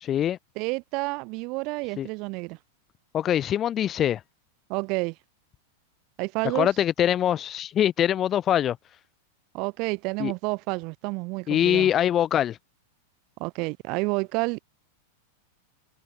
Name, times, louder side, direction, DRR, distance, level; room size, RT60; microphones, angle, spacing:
voice 1, 0.0-0.4 2.0-2.1 3.1-4.2 6.5-8.8 10.2-10.3 11.5-12.6, left 10 dB, 30° left, 0.8 m, -23 dB
voice 2, 0.6-2.6 4.7-5.1 6.2-6.7 9.5-11.9 13.4-14.6, right 27 dB, 50° right, 3.1 m, -29 dB
hypercardioid pair, 110°, 0 cm